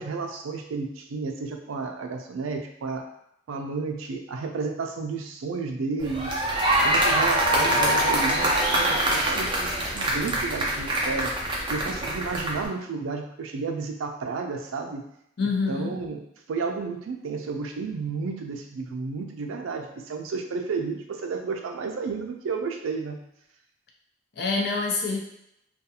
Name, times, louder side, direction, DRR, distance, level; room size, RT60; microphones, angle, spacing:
voice 1, 0.0-3.0 3.5-6.3 6.8-11.3 11.7-15.0 15.7-16.2 16.5-23.2, right 4 dB, 90° right, 4 dB, 0.4 m, -32 dB
sound 1, 6.0-12.7, right 1 dB, 25° right, 0.4 m, -24 dB
voice 2, 15.4-15.9 24.4-25.2, left 4 dB, 55° left, 0 dB, 0.5 m, -26 dB
2.4 x 2.3 x 2.7 m, 0.78 s
head